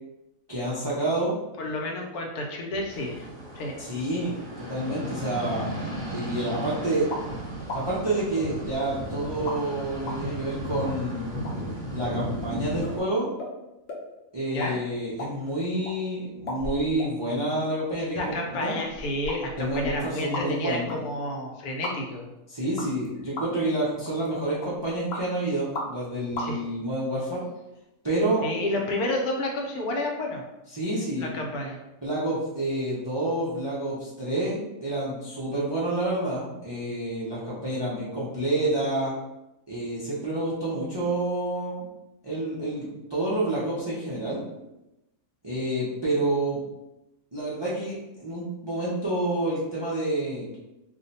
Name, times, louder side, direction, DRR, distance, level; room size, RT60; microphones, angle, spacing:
voice 1, 0.5-1.3 3.8-5.8 6.1-7.1 7.7-11.4 11.9-13.3 14.3-18.8 19.6-21.0 22.5-27.4 28.0-28.7 30.7-31.3 32.0-39.1 39.7-41.9 42.2-44.4 45.4-46.6 47.3-50.6, right 1 dB, 45° right, -7 dB, 0.3 m, -28 dB
voice 2, 1.6-3.3 3.5-3.7 14.5-14.8 18.2-22.2 26.4-26.6 28.4-30.4 31.2-31.8, left 1 dB, 85° left, 0 dB, 1.1 m, -30 dB
sound 1, 2.9-13.0, equal, 5° left, 0.6 m, -35 dB
sound 2, 7.1-7.3 7.7-7.8 8.3-9.0 9.5-9.6 10.1-10.2 10.8-10.9 11.4-11.5 12.0-12.2 12.4-12.5 12.8-12.9 13.4-13.5 13.9-14.0 14.4-14.7 15.0-15.9 16.5-17.1 17.5-17.6 18.2-18.3 18.8-20.6 20.9-21.0 21.8-21.9 22.8-23.1 23.4-23.7 24.0-24.3 24.6-25.2 25.7-26.1 26.3-26.5, left 2 dB, 55° left, 0.8 m, -35 dB
2.6 x 2.1 x 3.9 m, 0.94 s
omnidirectional pair, 1.5 m